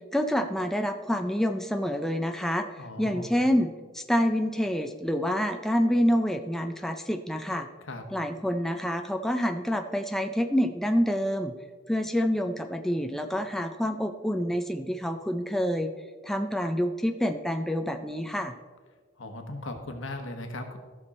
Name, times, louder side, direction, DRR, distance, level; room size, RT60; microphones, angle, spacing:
voice 1, 0.1-7.7 8.1-11.5 11.9-15.9 16.2-18.5, equal, ahead, 5 dB, 0.4 m, -27 dB
voice 2, 2.8-3.3 7.9-8.0 19.2-20.8, left 2 dB, 75° left, 5 dB, 1.3 m, -37 dB
14.5 x 6.2 x 4.2 m, 1.5 s
head